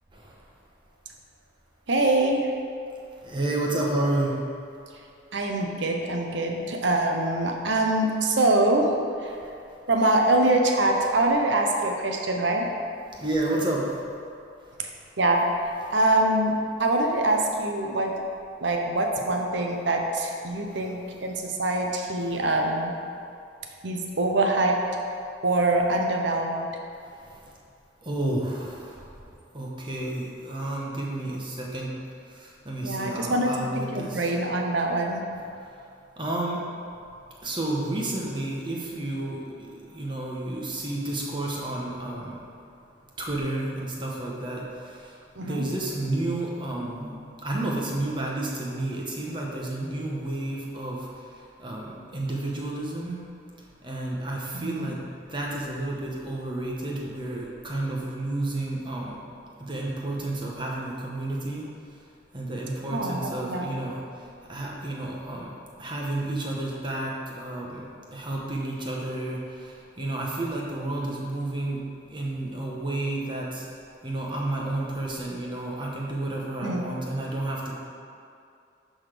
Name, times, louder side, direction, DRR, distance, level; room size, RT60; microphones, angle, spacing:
voice 1, 1.9-2.5 5.3-8.9 9.2-9.3 9.9-12.7 14.8-14.9 15.2-15.4 15.9-18.1 18.6-22.9 23.8-24.8 25.4-26.7 32.8-35.2 45.4-45.7 54.5-54.9 62.9-63.7 76.6-76.8, right 2 dB, 75° right, 1 dB, 0.9 m, -24 dB
voice 2, 3.2-4.4 13.2-13.9 28.0-29.0 29.5-31.9 32.3-34.3 36.2-36.6 37.4-42.4 43.2-45.1 45.4-47.2 47.4-51.1 51.6-53.2 53.8-55.0 55.3-59.2 59.6-61.6 62.3-64.0 64.5-65.5 65.8-69.4 70.0-71.8 72.1-73.7 74.0-77.8, right 2 dB, 25° right, -3 dB, 1.2 m, -31 dB
11.0 x 4.0 x 5.1 m, 2.5 s
head